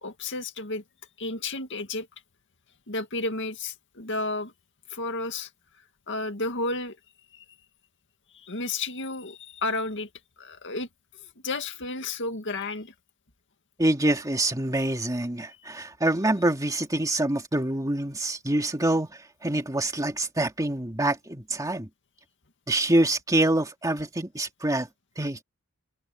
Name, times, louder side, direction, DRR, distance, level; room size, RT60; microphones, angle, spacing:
voice 1, 0.0-0.8 1.2-2.1 2.9-4.5 4.9-5.5 6.1-7.0 7.3-7.4 8.4-10.1 10.4-10.9 11.4-12.9, left 2 dB, 60° left, 2.1 m, -32 dB
voice 2, 13.8-19.1 19.4-21.9 22.7-24.9 25.2-25.4, right 1 dB, 15° right, 2.1 m, -25 dB
head